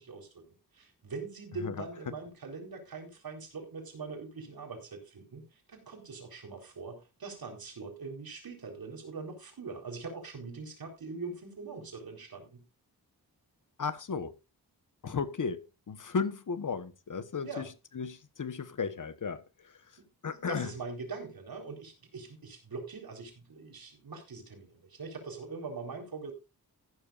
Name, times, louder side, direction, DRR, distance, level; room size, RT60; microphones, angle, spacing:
voice 1, 0.0-12.6 17.4-17.7 20.0-26.3, right 4 dB, 70° right, 4.1 m, -42 dB
voice 2, 1.6-2.1 13.8-14.3 15.0-17.6 17.9-19.7 20.2-20.7, left 5 dB, 55° left, 1.2 m, -35 dB
14.0 x 12.0 x 2.5 m
wide cardioid pair, 140°, 37 cm